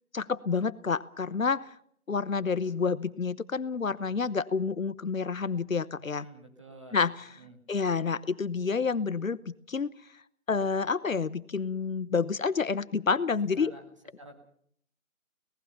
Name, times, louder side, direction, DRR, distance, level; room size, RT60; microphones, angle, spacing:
voice 1, 0.1-1.7 2.1-6.3 6.9-7.3 7.7-9.9 10.5-13.7, left 5 dB, 70° left, 17 dB, 0.9 m, -29 dB
voice 2, 6.0-7.0 7.3-7.6 13.6-13.8 14.2-14.4, right 1 dB, 20° right, 2 dB, 2.0 m, -49 dB
26.0 x 18.5 x 5.7 m, 0.64 s
figure-of-eight pair, 175°, 42 cm